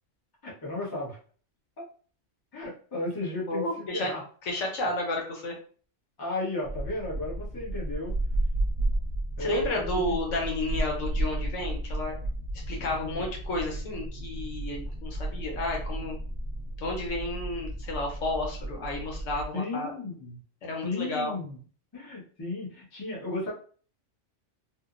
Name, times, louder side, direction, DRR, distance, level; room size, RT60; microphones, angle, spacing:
voice 1, 0.4-1.2 2.5-4.2 6.2-8.1 9.4-10.2 12.7-13.2 19.5-20.4 20.8-21.6 21.9-23.5, left 2 dB, 20° left, -5 dB, 0.7 m, -34 dB
voice 2, 3.5-4.1 4.5-5.5 9.4-12.2 12.7-16.2 16.8-19.9 20.6-21.3, left 2 dB, 80° left, 0 dB, 1.1 m, -32 dB
sound 1, 6.6-19.5, right 1 dB, 55° right, 0.9 m, -33 dB
2.8 x 2.0 x 2.4 m, 0.42 s
omnidirectional pair, 1.3 m